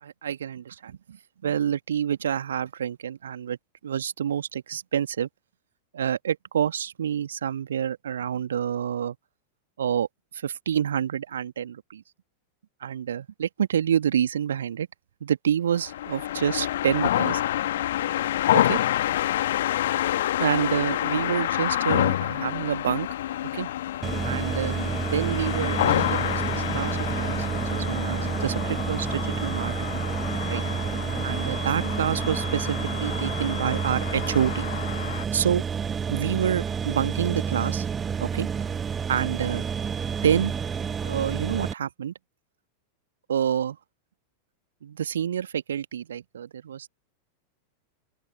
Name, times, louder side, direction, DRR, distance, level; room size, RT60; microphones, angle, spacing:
voice 1, 0.0-1.2 1.4-3.6 3.8-5.3 5.9-9.1 9.8-10.1 10.3-12.0 12.8-14.9 15.2-17.4 18.5-18.8 20.4-23.1 23.5-23.7 24.2-24.8 25.1-27.5 27.7-29.7 30.5-30.6 31.2-34.7 35.3-35.6 36.1-37.9 38.2-38.5 39.1-39.6 40.2-40.5 41.0-42.1 43.3-43.8 44.8-46.9, right 9 dB, 65° right, 1.7 m, -28 dB
sound 1, 15.8-35.2, left 13 dB, 60° left, 2.0 m, -28 dB
sound 2, 24.0-41.7, right 7 dB, 20° right, 1.1 m, -29 dB
open air
figure-of-eight pair, 90°, 0 cm